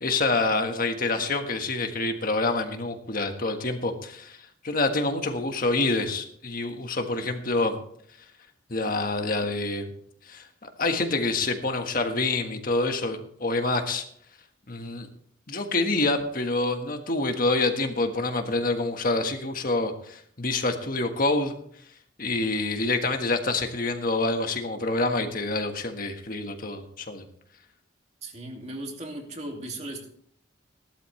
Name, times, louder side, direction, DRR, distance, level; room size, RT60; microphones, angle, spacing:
voice 1, 0.0-4.4 4.6-7.8 8.7-9.9 10.2-14.0 14.7-15.1 15.5-21.6 22.2-27.2, left 2 dB, 45° left, 5 dB, 1.5 m, -27 dB
voice 2, 28.2-30.1, right 1 dB, 35° right, 2 dB, 2.4 m, -37 dB
17.5 x 12.0 x 3.3 m, 0.64 s
head